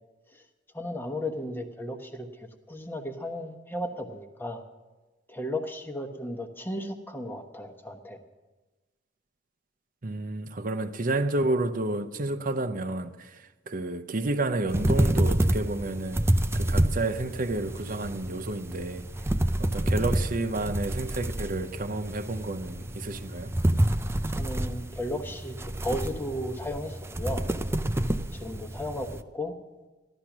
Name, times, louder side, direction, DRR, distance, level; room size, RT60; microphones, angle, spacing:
voice 1, 0.7-4.6 5.3-8.2 24.3-27.5 28.3-29.5, left 1 dB, 10° left, 1.1 m, -35 dB
voice 2, 10.0-16.2 16.5-19.1 19.6-23.5, right 2 dB, 45° right, 0.7 m, -30 dB
sound 1, 14.7-29.2, right 1 dB, 15° right, 0.5 m, -28 dB
15.0 x 12.0 x 6.0 m
head